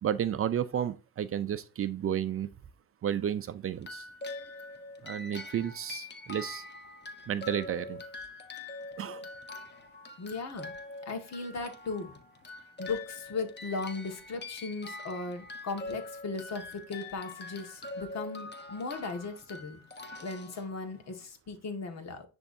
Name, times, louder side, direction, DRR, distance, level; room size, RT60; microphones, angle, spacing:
voice 1, 0.0-2.5 3.0-4.1 5.0-6.6 7.3-8.0 9.0-9.2, right 9 dB, 40° right, 0.6 m, -32 dB
sound 1, 3.8-21.2, left 3 dB, 30° left, 1.2 m, -44 dB
voice 2, 10.2-10.7 11.0-12.1 12.8-19.8 20.2-22.2, left 3 dB, 50° left, 1.8 m, -37 dB
10.0 x 3.5 x 2.7 m
cardioid pair, 95°, 33 cm